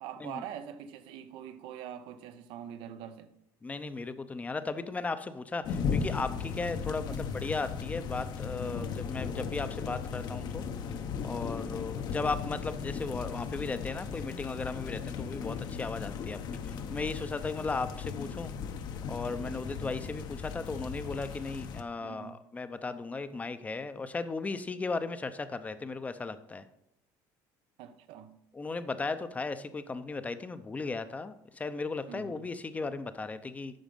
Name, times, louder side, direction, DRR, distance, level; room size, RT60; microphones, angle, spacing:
voice 1, 0.0-3.3 7.1-7.4 22.0-22.4 27.8-28.4 32.1-32.5, right 9 dB, 70° right, 0.8 m, -44 dB
voice 2, 3.6-10.6 11.2-16.4 16.6-18.5 19.1-26.7 28.5-33.8, left 3 dB, 15° left, 0.6 m, -36 dB
sound 1, 5.6-21.8, left 6 dB, 55° left, 0.8 m, -37 dB
9.1 x 6.1 x 5.3 m
cardioid pair, 125°, 9 cm